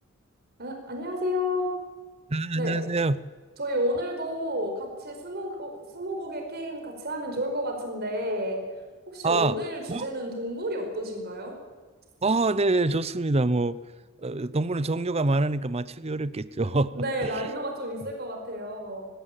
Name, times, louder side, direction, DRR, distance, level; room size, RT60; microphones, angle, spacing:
voice 1, 0.6-1.7 2.5-2.7 3.6-8.6 9.1-11.5 16.9-19.1, equal, 50° right, 3 dB, 5.0 m, -31 dB
voice 2, 2.3-3.2 9.2-9.6 9.9-10.1 12.2-13.8 14.2-16.9 17.2-17.5, right 2 dB, 30° right, 17 dB, 0.7 m, -25 dB
18.5 x 17.0 x 9.1 m, 1.4 s
head